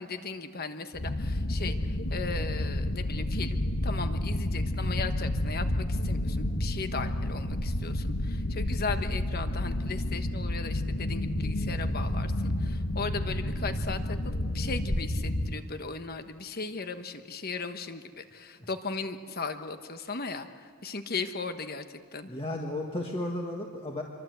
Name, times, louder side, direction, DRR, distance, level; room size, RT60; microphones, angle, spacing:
voice 1, 0.0-22.3, left 4 dB, 45° left, 8 dB, 1.2 m, -37 dB
sound 1, 0.9-15.6, left 1 dB, 60° left, 1.5 m, -30 dB
voice 2, 22.3-24.0, left 1 dB, 25° left, 0 dB, 1.7 m, -33 dB
26.5 x 23.5 x 8.1 m, 2.2 s
head